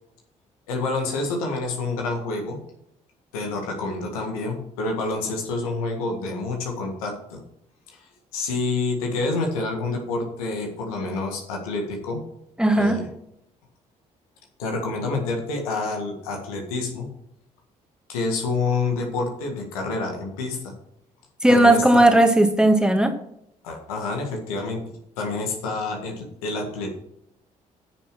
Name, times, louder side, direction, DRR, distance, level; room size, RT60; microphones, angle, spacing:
voice 1, 0.7-2.6 3.3-7.4 7.9-12.3 12.8-13.1 14.6-17.1 18.1-20.7 21.5-22.1 23.6-24.8 25.2-26.9, left 3 dB, 90° left, 2 dB, 1.8 m, -28 dB
voice 2, 12.6-13.0 21.4-23.2, right 1 dB, 5° right, 5 dB, 1.8 m, -16 dB
9.6 x 6.3 x 6.0 m, 0.76 s
hypercardioid pair, 45°, 18 cm